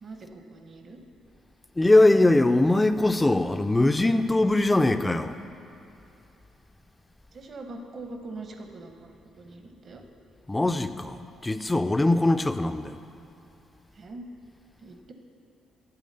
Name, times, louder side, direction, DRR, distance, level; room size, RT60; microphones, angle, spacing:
voice 1, 0.0-1.0 7.3-10.0 13.9-14.3 14.8-15.1, right 2 dB, 50° right, 4 dB, 0.8 m, -42 dB
voice 2, 1.8-5.3 10.5-13.0, left 2 dB, 15° left, 10 dB, 0.3 m, -21 dB
8.5 x 3.7 x 6.6 m, 2.9 s
cardioid pair, 90°, 0 cm